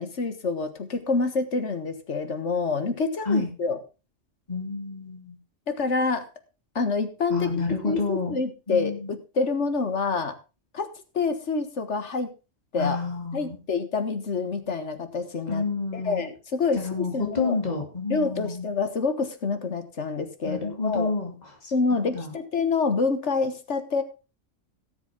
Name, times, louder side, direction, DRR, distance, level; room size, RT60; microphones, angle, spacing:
voice 1, 0.0-3.8 5.7-6.3 6.8-7.5 7.8-10.4 10.7-10.9 11.1-12.3 12.7-13.0 13.3-15.6 15.9-17.6 18.1-21.1 21.7-24.0, left 4 dB, 70° left, 9 dB, 1.8 m, -27 dB
voice 2, 4.5-5.4 7.3-9.1 12.8-13.6 15.5-16.2 16.7-18.7 20.4-21.3 21.6-22.3, left 4 dB, 35° left, 2 dB, 2.9 m, -29 dB
17.5 x 7.3 x 3.7 m, 0.30 s
omnidirectional pair, 1.2 m